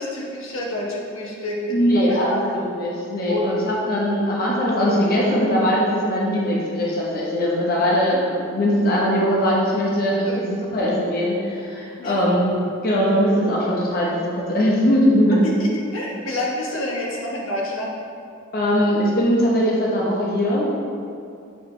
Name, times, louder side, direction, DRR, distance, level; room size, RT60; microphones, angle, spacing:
voice 1, 0.0-2.6 3.3-3.5 8.1-8.2 10.2-10.5 12.0-12.2 15.4-17.9, left 1 dB, 80° left, -3 dB, 1.1 m, -28 dB
voice 2, 1.7-15.5 18.5-20.7, equal, 50° left, -4 dB, 0.9 m, -20 dB
7.8 x 4.7 x 3.2 m, 2.5 s
head